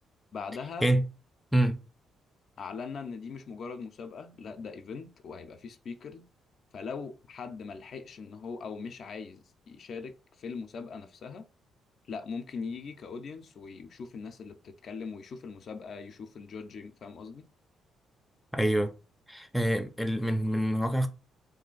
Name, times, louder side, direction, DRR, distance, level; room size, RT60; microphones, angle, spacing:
voice 1, 0.3-0.9 2.6-6.2 6.7-11.5 12.1-17.5, left 5 dB, 60° left, 0.4 m, -41 dB
voice 2, 18.5-18.9 19.3-21.1, right 1 dB, ahead, 0.4 m, -26 dB
2.7 x 2.4 x 3.9 m
cardioid pair, 90°, 0 cm